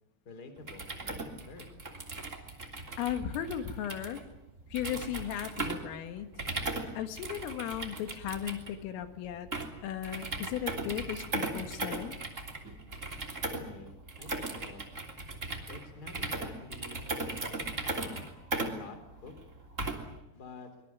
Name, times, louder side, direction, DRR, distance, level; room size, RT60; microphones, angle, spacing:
voice 1, 0.2-1.7 13.6-14.9 15.7-17.1 17.8-18.3 18.7-19.3 20.3-20.7, left 3 dB, 20° left, 8 dB, 3.3 m, -49 dB
sound 1, 0.6-20.2, right 2 dB, 20° right, 2.4 m, -38 dB
voice 2, 3.0-4.2 4.7-6.3 7.0-9.5 9.8-12.2, left 10 dB, 80° left, 8 dB, 4.2 m, -36 dB
24.0 x 22.0 x 9.5 m, 0.87 s
omnidirectional pair, 5.8 m